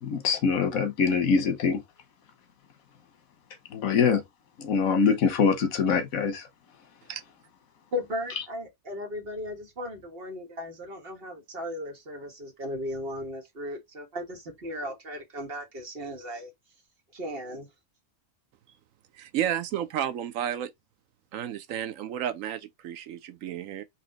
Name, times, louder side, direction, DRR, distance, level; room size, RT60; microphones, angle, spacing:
voice 1, 0.0-1.8 3.7-4.2 4.6-6.5, left 5 dB, 85° left, 1.4 m, -24 dB
voice 2, 7.9-16.5 17.1-17.7, left 1 dB, 45° right, 1.5 m, -36 dB
voice 3, 19.1-20.7 21.3-23.8, right 10 dB, 75° right, 1.0 m, -32 dB
4.2 x 2.7 x 3.8 m
omnidirectional pair, 1.4 m